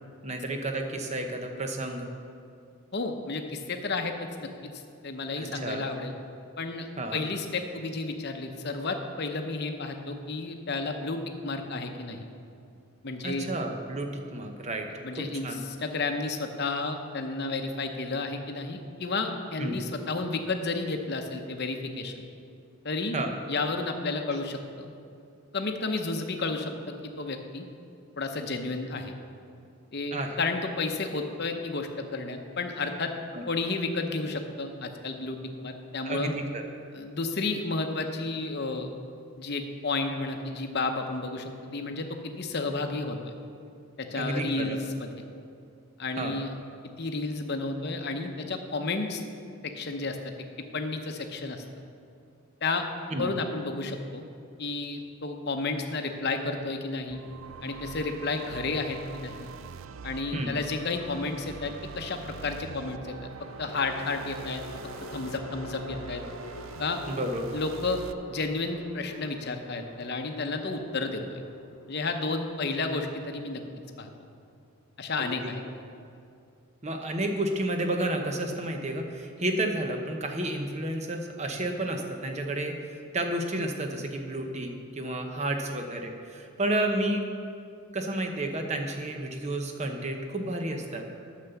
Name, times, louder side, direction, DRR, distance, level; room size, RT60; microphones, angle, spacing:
voice 1, 0.2-2.1 5.4-5.8 7.0-7.2 13.2-14.9 15.2-15.6 19.6-19.8 23.1-23.3 30.1-30.4 33.3-33.4 36.0-36.6 44.1-44.8 46.2-46.4 53.1-53.3 60.3-60.6 67.1-67.4 75.2-75.3 76.8-87.3 87.9-91.1, right 1 dB, 30° right, 4 dB, 0.8 m, -31 dB
voice 2, 2.9-4.1 4.4-6.1 6.6-12.3 13.0-13.5 15.0-22.2 22.8-23.2 23.5-24.9 25.5-27.7 28.2-29.1 29.9-33.1 33.5-36.3 36.9-38.9 39.4-43.3 44.0-45.1 46.0-46.5 47.0-49.2 49.6-51.6 52.6-52.9 53.2-54.2 54.6-57.2 57.6-59.5 60.0-63.3 63.6-64.6 65.1-66.2 66.8-67.0 67.5-68.0 68.3-71.4 71.9-73.6 74.0-74.1 75.0-75.6, left 3 dB, 45° left, 5 dB, 0.8 m, -32 dB
sound 1, 57.1-68.1, right 6 dB, 65° right, 0.4 m, -44 dB
sound 2, 59.9-60.8 63.0-74.4, left 1 dB, 85° left, 1.1 m, -47 dB
9.3 x 6.7 x 6.9 m, 2.4 s
head